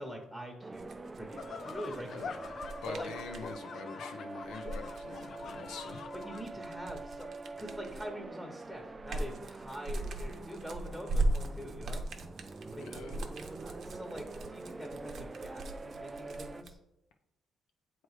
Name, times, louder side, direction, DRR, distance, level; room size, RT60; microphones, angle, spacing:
voice 1, 0.0-2.5 2.9-3.1 6.1-12.0 12.7-12.8 13.4-16.8, equal, 5° right, 1 dB, 1.1 m, -44 dB
sound 1, 0.6-16.6, right 3 dB, 25° right, 0.3 m, -45 dB
sound 2, 0.7-3.5 4.5-8.2 8.7-16.7, right 1 dB, 60° right, 0.8 m, -38 dB
sound 3, 1.4-6.5, left 6 dB, 55° left, 0.3 m, -45 dB
voice 2, 2.8-6.0 12.8-13.1, left 5 dB, 85° left, 3 dB, 0.7 m, -45 dB
7.6 x 3.1 x 4.9 m, 0.87 s
cardioid pair, 90°, 0 cm